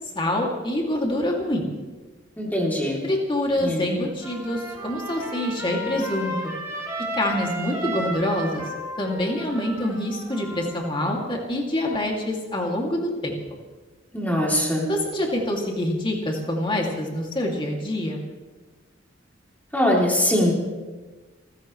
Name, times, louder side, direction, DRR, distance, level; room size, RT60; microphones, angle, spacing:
voice 1, 0.1-1.7 3.0-6.5 7.1-8.6 9.0-13.3 14.9-18.2, left 1 dB, 25° left, 0 dB, 2.6 m, -26 dB
voice 2, 2.4-3.0 3.6-3.9 14.1-14.9 19.7-20.5, left 1 dB, 10° left, -2 dB, 3.1 m, -22 dB
Trumpet, 4.2-10.9, equal, 15° right, 3.8 m, -33 dB
27.5 x 15.0 x 3.3 m, 1.3 s
head